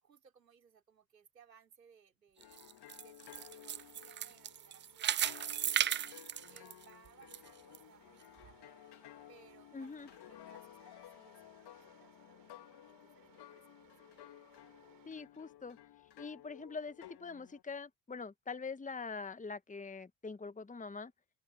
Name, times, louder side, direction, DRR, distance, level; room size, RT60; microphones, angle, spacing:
voice 1, 0.0-2.7 3.0-6.0 6.5-8.8 9.3-14.2, right 7 dB, 85° right, 4.8 m, -64 dB
sound 1, 2.4-17.6, left 13 dB, 55° left, 4.0 m, -56 dB
sound 2, 2.4-7.4 7.7-7.8 8.4-8.5, right 10 dB, 25° right, 0.5 m, -36 dB
sound 3, 3.2-15.1, right 8 dB, 45° right, 6.6 m, -66 dB
voice 2, 9.7-10.1 15.0-15.8 16.2-21.1, left 4 dB, 15° left, 1.5 m, -44 dB
open air
figure-of-eight pair, 50°, 48 cm